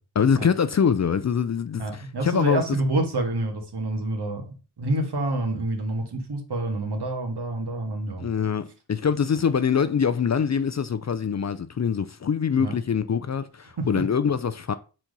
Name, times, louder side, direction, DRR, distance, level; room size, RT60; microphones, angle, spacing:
voice 1, 0.1-2.6 8.2-14.7, left 7 dB, 40° left, 0.5 m, -24 dB
voice 2, 1.8-4.5 4.8-8.2 12.6-12.7 13.8-14.0, right 2 dB, 65° right, 1.9 m, -27 dB
4.6 x 4.4 x 5.2 m
wide cardioid pair, 85°, 44 cm